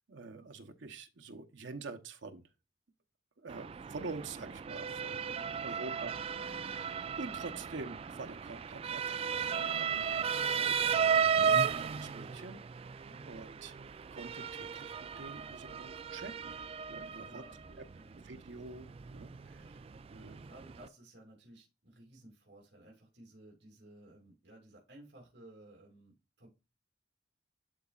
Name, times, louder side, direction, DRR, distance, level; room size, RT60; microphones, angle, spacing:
voice 1, 0.1-2.5 3.4-5.2 5.6-6.1 6.4-11.4 11.8-12.6 13.2-13.7 14.1-16.6 16.9-17.4 17.8-17.9 18.1-19.8 20.1-20.4, right 3 dB, 90° right, 0.8 m, -46 dB
Motor vehicle (road) / Siren, 3.5-20.9, right 7 dB, 30° right, 0.3 m, -35 dB
voice 2, 5.3-6.1 13.1-13.4 17.1-18.2 20.2-26.1 26.4-26.5, right 1 dB, 65° right, 2.4 m, -57 dB
11.5 x 4.0 x 2.4 m
head